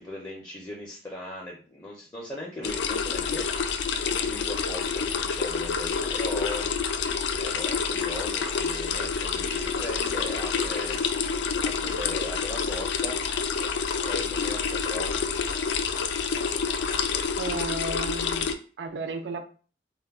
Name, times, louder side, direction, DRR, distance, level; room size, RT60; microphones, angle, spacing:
voice 1, 0.0-6.7 7.3-11.0 11.6-13.2 14.1-15.2, left 1 dB, 20° left, -2 dB, 0.4 m, -38 dB
sound 1, 2.6-18.6, left 6 dB, 85° left, 0.3 m, -28 dB
voice 2, 17.4-19.4, right 3 dB, 80° right, 6 dB, 0.4 m, -34 dB
2.2 x 2.0 x 3.4 m, 0.39 s
head